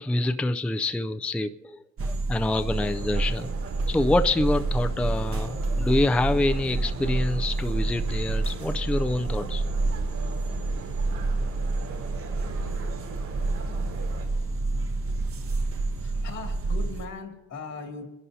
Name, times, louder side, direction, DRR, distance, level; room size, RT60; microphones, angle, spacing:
voice 1, 0.0-3.5 3.9-9.6, left 2 dB, 5° left, 9 dB, 0.4 m, -26 dB
sound 1, 2.0-17.1, right 2 dB, 45° right, 1.1 m, -28 dB
sound 2, 2.7-14.2, right 3 dB, 80° right, 4.6 m, -42 dB
voice 2, 15.6-18.1, left 4 dB, 75° left, 1 dB, 2.5 m, -39 dB
30.0 x 11.0 x 2.8 m, 1.0 s
cardioid pair, 90°, 30 cm